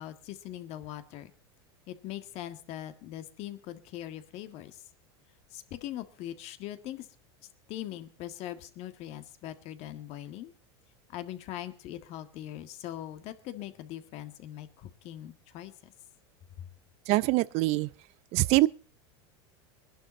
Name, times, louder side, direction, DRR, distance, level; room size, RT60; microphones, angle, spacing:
voice 1, 0.0-1.3 1.9-4.8 5.5-7.1 7.7-10.5 11.1-15.9, left 12 dB, 50° left, 1.8 m, -41 dB
voice 2, 17.1-17.9 18.3-18.7, right 20 dB, 55° right, 0.6 m, -24 dB
20.5 x 11.5 x 4.1 m
hypercardioid pair, 105°, 14 cm